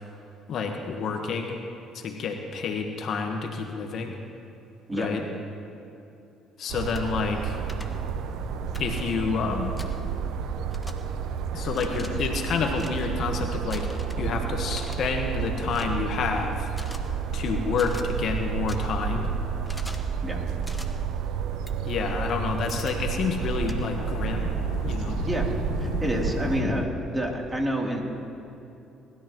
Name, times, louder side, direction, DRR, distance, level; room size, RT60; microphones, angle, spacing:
voice 1, 0.5-1.6 1.9-4.2 4.9-5.2 6.6-7.6 8.8-9.8 11.5-16.7 17.3-19.3 21.8-24.5 24.9-25.2, left 5 dB, 60° left, 4 dB, 1.4 m, -29 dB
sound 1, 6.7-26.6, right 7 dB, 70° right, 0.7 m, -30 dB
sound 2, 6.9-7.0 7.7-7.8 8.7-8.9 9.8-9.9 10.7-10.9 11.7-12.1 12.7-12.9 13.7-14.2 14.7-15.0 15.7-15.9 16.7-17.0 17.7-18.0 18.7-18.8 19.7-20.0 20.6-20.9 21.7-21.8 22.7-22.9 23.7-23.8, left 1 dB, 10° left, 1.5 m, -43 dB
sound 3, 7.5-26.9, left 5 dB, 80° left, 1.2 m, -41 dB
voice 2, 25.8-28.0, right 1 dB, 15° right, -1 dB, 3.2 m, -28 dB
23.0 x 13.0 x 3.1 m, 2.8 s
supercardioid pair, 70°, 0 cm